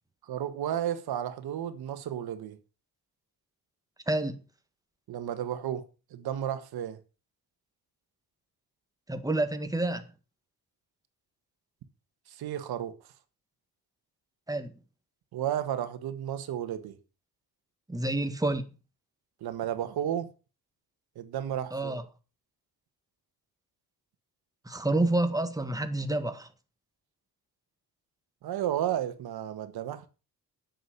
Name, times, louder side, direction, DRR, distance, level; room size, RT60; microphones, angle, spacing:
voice 1, 0.3-2.6 5.1-7.0 12.3-13.0 15.3-17.0 19.4-20.3 21.2-22.0 28.4-30.1, right 10 dB, 85° right, 1.6 m, -33 dB
voice 2, 4.1-4.4 9.1-10.0 14.5-14.7 17.9-18.7 21.7-22.0 24.7-26.5, right 2 dB, 10° right, 1.8 m, -28 dB
9.7 x 7.8 x 6.7 m
cardioid pair, 85°, 37 cm